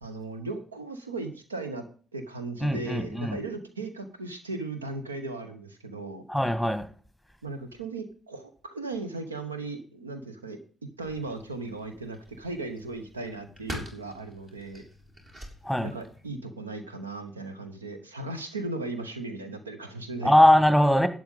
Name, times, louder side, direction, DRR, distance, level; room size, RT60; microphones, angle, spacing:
voice 1, 0.0-1.8 2.1-6.2 7.4-10.6 11.0-14.8 15.8-20.3, right 3 dB, 85° right, 0.9 m, -37 dB
voice 2, 2.6-3.4 6.3-6.9 15.6-15.9 20.2-21.1, left 1 dB, 5° right, 1.7 m, -21 dB
sound 1, 11.0-16.4, equal, 40° right, 3.6 m, -45 dB
11.5 x 7.7 x 5.3 m
figure-of-eight pair, 40°, 0 cm